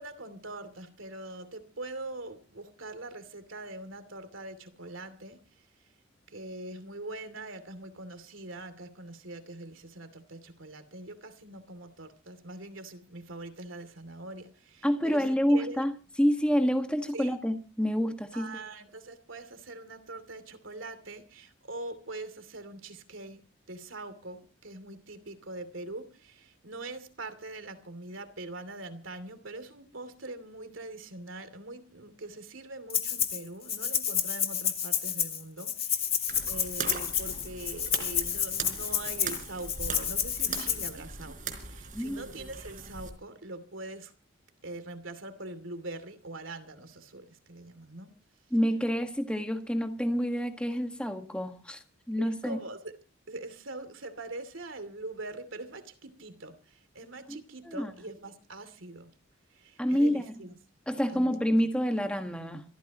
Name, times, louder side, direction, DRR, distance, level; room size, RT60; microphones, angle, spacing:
voice 1, 0.0-5.4 6.3-15.2 15.5-15.8 17.1-17.3 18.3-23.4 23.7-44.1 44.6-48.2 52.2-53.0 53.3-59.1 59.5-60.5 61.1-61.4, right 2 dB, 85° right, 2.7 m, -43 dB
voice 2, 14.8-15.9 16.2-18.6 41.9-42.2 48.5-52.6 57.3-57.4 57.6-57.9 59.8-60.2 60.9-62.6, equal, 5° left, 1.5 m, -28 dB
Rattle (instrument), 32.9-33.4 33.7-40.9, left 8 dB, 30° left, 2.1 m, -30 dB
sound 1, 36.3-43.1, right 5 dB, 40° right, 4.2 m, -40 dB
26.5 x 14.0 x 2.9 m
head